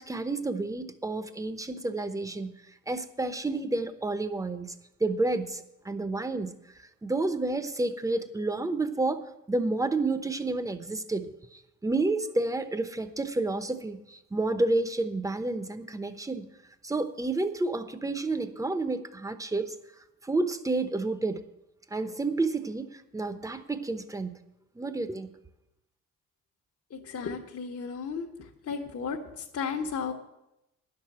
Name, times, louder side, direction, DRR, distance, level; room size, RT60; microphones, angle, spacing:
voice 1, 0.0-2.5 2.9-4.7 5.0-6.5 6.8-16.5 16.8-19.8 20.2-21.4 21.9-24.3 24.7-25.3, right 2 dB, 10° right, 10 dB, 0.9 m, -30 dB
voice 2, 26.9-28.3 28.7-30.1, left 6 dB, 55° left, -1 dB, 1.3 m, -34 dB
10.0 x 6.8 x 8.9 m, 0.89 s
cardioid pair, 90°, 30 cm